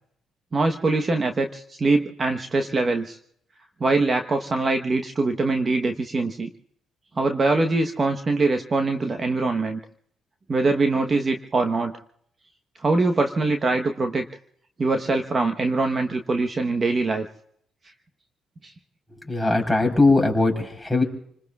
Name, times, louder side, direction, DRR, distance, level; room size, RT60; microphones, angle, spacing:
voice 1, 0.5-3.2 3.8-6.5 7.2-9.8 10.5-11.9 12.8-14.3 14.8-17.3 18.6-18.7, right 3 dB, 35° right, 5 dB, 1.1 m, -23 dB
voice 2, 19.3-21.0, left 2 dB, ahead, 0 dB, 4.0 m, -20 dB
29.0 x 20.0 x 2.4 m, 0.67 s
cardioid pair, 90°, 0 cm